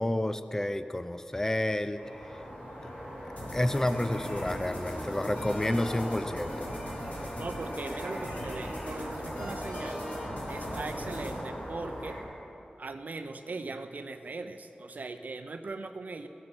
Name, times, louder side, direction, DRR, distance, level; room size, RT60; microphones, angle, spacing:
voice 1, 0.0-2.0 2.8-2.9 3.5-6.7, left 1 dB, 15° left, 11 dB, 0.5 m, -30 dB
sound 1, 1.9-12.2, equal, 85° left, 4.2 m, -40 dB
sound 2, 3.4-11.4, equal, 60° left, 4.0 m, -40 dB
voice 2, 7.4-10.0 10.5-12.2 12.8-16.3, right 3 dB, 65° right, 8 dB, 0.7 m, -39 dB
16.0 x 9.9 x 6.1 m, 2.8 s
wide cardioid pair, 80°, 3 cm